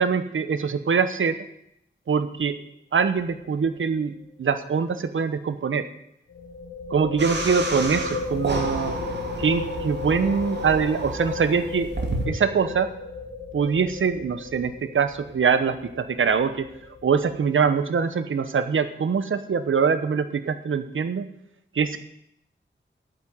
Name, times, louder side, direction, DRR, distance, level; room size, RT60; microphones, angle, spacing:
voice 1, 0.0-1.4 2.1-2.6 2.9-4.1 4.4-5.9 6.9-8.9 9.4-11.9 12.3-12.9 13.5-21.3 21.7-22.0, right 6 dB, 85° right, 11 dB, 1.0 m, -23 dB
sound 1, 3.2-3.5 3.7-3.8 6.3-17.7, left 5 dB, 75° left, 1.7 m, -35 dB
sound 2, 7.2-12.3, right 2 dB, 60° right, 2.3 m, -31 dB
8.9 x 8.2 x 9.0 m, 0.76 s
wide cardioid pair, 115°, 20 cm